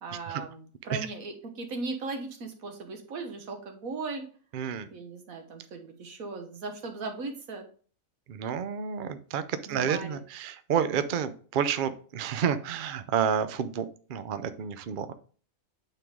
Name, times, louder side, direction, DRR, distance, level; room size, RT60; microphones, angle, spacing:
voice 1, 0.0-4.2 4.9-7.6 9.6-10.2, right 3 dB, 80° right, 4 dB, 1.7 m, -37 dB
voice 2, 4.5-4.9 8.3-13.8 14.1-15.1, right 7 dB, 50° right, 11 dB, 0.6 m, -30 dB
9.1 x 3.8 x 3.6 m, 0.42 s
omnidirectional pair, 1.4 m